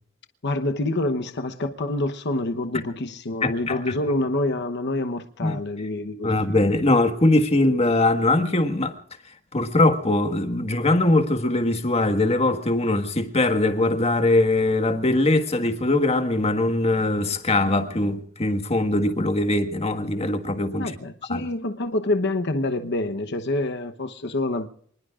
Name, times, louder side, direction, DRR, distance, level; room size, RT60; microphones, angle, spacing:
voice 1, 0.4-6.6 20.8-24.7, left 2 dB, 55° left, 0.9 m, -27 dB
voice 2, 3.4-4.0 5.4-5.6 6.2-8.9 9.5-20.9 21.3-21.4, left 2 dB, 30° left, 1.6 m, -21 dB
27.0 x 20.0 x 2.5 m
head